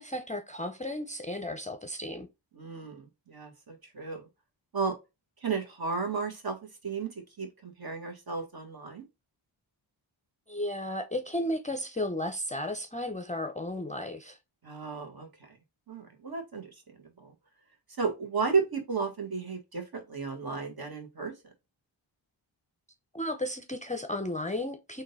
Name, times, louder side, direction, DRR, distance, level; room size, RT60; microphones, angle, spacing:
voice 1, 0.0-2.3 10.5-14.4 23.1-25.0, left 1 dB, 15° left, 0.5 m, -34 dB
voice 2, 2.5-4.3 4.7-4.9 5.4-6.6 6.8-7.1 7.4-9.0 14.6-15.3 15.9-16.7 17.2-17.3 18.0-21.3, right 5 dB, 50° right, 1.5 m, -33 dB
3.7 x 2.7 x 3.9 m
cardioid pair, 70°, 47 cm